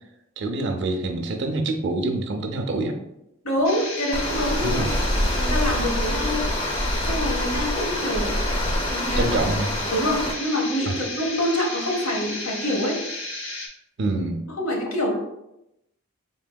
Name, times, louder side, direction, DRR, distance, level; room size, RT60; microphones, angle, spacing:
voice 1, 0.4-3.0 4.6-4.9 9.2-9.7 10.9-11.0 14.0-14.4, right 2 dB, 55° right, 5 dB, 0.5 m, -26 dB
voice 2, 3.4-4.9 5.1-6.6 7.0-8.4 8.9-9.3 9.9-13.0 14.5-15.2, left 1 dB, 75° left, 0 dB, 1.0 m, -26 dB
sound 1, 3.6-13.7, left 2 dB, 60° left, 0.7 m, -33 dB
Water, 4.1-10.3, equal, 20° left, 0.4 m, -26 dB
4.0 x 3.6 x 2.2 m, 0.86 s
head